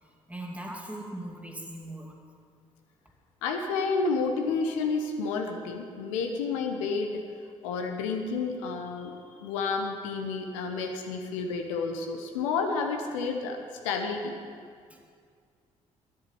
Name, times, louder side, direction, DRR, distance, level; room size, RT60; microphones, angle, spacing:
voice 1, 0.3-2.1 14.9-15.1, right 1 dB, 10° right, 0 dB, 2.5 m, -39 dB
voice 2, 3.4-7.2 7.6-13.6 13.8-14.3, left 4 dB, 75° left, 3 dB, 1.0 m, -30 dB
10.5 x 7.4 x 8.7 m, 2.1 s
figure-of-eight pair, 45°, 17 cm